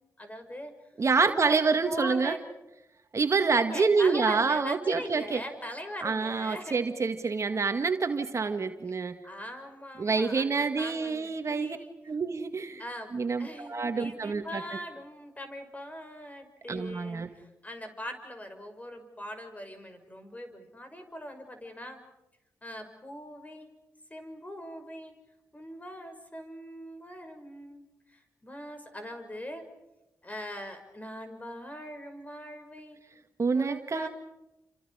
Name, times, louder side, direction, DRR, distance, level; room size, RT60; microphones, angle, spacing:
voice 1, 0.2-0.7 1.2-2.4 3.5-6.8 9.2-11.9 12.8-13.1 13.4-22.0 22.6-23.7 24.1-25.1 25.5-29.7 30.2-33.0 33.5-34.1, equal, 25° left, 6 dB, 6.3 m, -41 dB
voice 2, 1.0-2.3 3.1-5.4 6.0-9.2 10.0-11.8 12.1-12.8 13.1-14.6 16.7-17.3 33.4-34.1, right 4 dB, 50° right, 7 dB, 1.9 m, -27 dB
30.0 x 27.0 x 5.0 m, 0.93 s
supercardioid pair, 50°, 6 cm